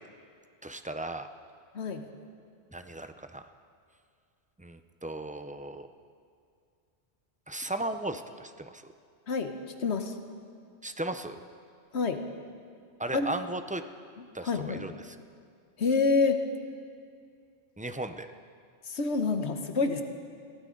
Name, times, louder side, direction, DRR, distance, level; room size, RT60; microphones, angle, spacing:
voice 1, 0.6-1.3 2.7-3.5 4.6-5.9 7.5-8.9 10.8-11.4 13.0-13.8 14.3-15.2 17.8-18.3, right 1 dB, 10° right, 8 dB, 0.4 m, -36 dB
voice 2, 9.8-10.1 11.9-12.2 13.1-13.3 14.4-14.8 15.8-16.4 18.9-20.0, left 4 dB, 90° left, 6 dB, 1.3 m, -27 dB
22.5 x 16.5 x 3.8 m, 2.3 s
omnidirectional pair, 1.1 m